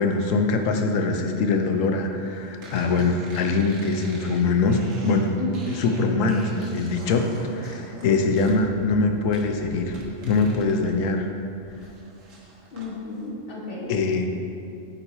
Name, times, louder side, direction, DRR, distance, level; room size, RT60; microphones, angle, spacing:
voice 1, 0.0-5.3 5.7-10.0 10.2-11.3 13.9-14.3, left 3 dB, 85° left, 4 dB, 1.0 m, -23 dB
sound 1, 2.6-10.9 11.3-12.9, right 1 dB, 85° right, 1.5 m, -44 dB
voice 2, 5.4-5.7 8.0-8.2 12.7-13.9, left 2 dB, 45° left, -5 dB, 1.6 m, -33 dB
9.1 x 4.0 x 4.2 m, 2.6 s
omnidirectional pair, 1.3 m